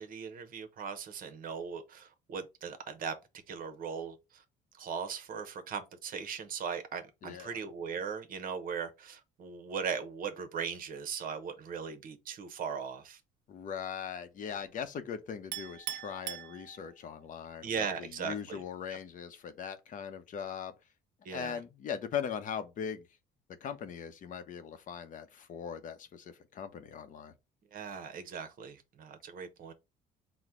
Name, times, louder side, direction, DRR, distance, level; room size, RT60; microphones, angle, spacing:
voice 1, 0.0-3.1 3.5-4.4 4.8-13.2 17.6-18.6 18.9-19.0 21.2-21.6 27.7-29.7, right 6 dB, 55° right, 0.8 m, -39 dB
voice 2, 7.2-7.6 13.5-20.7 21.3-23.1 23.6-27.3, left 7 dB, 50° left, 0.7 m, -40 dB
Chink clink, 15.5-17.2, right 14 dB, 85° right, 0.5 m, -41 dB
4.1 x 2.1 x 4.6 m
cardioid pair, 110°, 17 cm